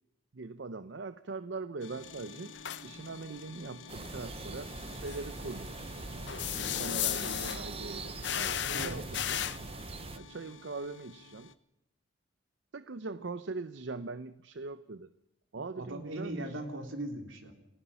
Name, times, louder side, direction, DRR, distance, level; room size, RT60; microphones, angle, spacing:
voice 1, 0.3-5.7 6.5-9.5 10.1-11.5 12.7-15.1 15.5-16.6, right 3 dB, 65° right, 0.7 m, -41 dB
sound 1, 1.8-11.5, left 4 dB, 85° left, 1.1 m, -50 dB
sound 2, 2.5-2.8 5.1-5.2 6.3-7.6 8.2-9.6, left 11 dB, 60° left, 0.7 m, -34 dB
sound 3, 3.9-10.2, right 3 dB, 30° right, 0.7 m, -42 dB
voice 2, 15.7-17.5, right 1 dB, 85° right, 3.3 m, -39 dB
29.5 x 15.5 x 5.7 m
head